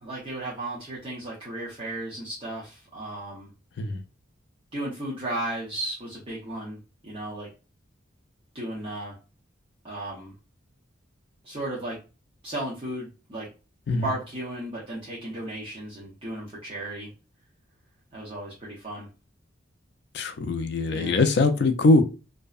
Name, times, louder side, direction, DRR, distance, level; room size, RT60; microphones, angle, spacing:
voice 1, 0.0-3.5 4.7-7.5 8.5-9.2 9.8-10.3 11.4-12.0 12.4-13.5 14.0-17.1 18.1-19.1 20.9-21.2, right 1 dB, 25° right, -7 dB, 0.7 m, -35 dB
voice 2, 20.1-22.0, left 3 dB, 55° left, 8 dB, 0.3 m, -22 dB
2.6 x 2.1 x 2.3 m, 0.31 s
head